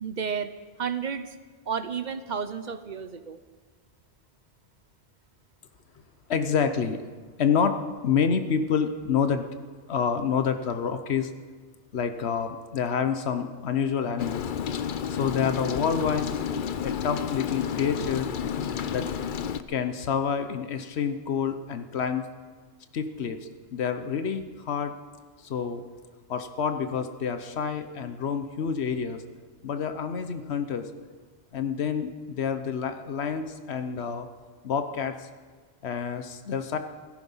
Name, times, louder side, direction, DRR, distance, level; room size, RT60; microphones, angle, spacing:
voice 1, 0.0-0.5 0.8-1.3 1.7-3.4, right 6 dB, 50° right, 11 dB, 0.8 m, -31 dB
voice 2, 6.3-7.0 7.4-9.5 9.9-11.3 11.9-14.5 15.1-16.4 16.8-18.3 18.9-19.1 19.7-22.3 22.9-23.4 23.7-24.9 25.4-25.8 26.3-29.2 29.6-30.9 31.5-34.3 34.6-35.3 35.8-36.8, left 6 dB, 90° left, 9 dB, 1.2 m, -28 dB
Rain, 14.2-19.6, left 8 dB, 55° left, 0.7 m, -31 dB
16.5 x 14.5 x 5.6 m, 1.5 s
omnidirectional pair, 1.1 m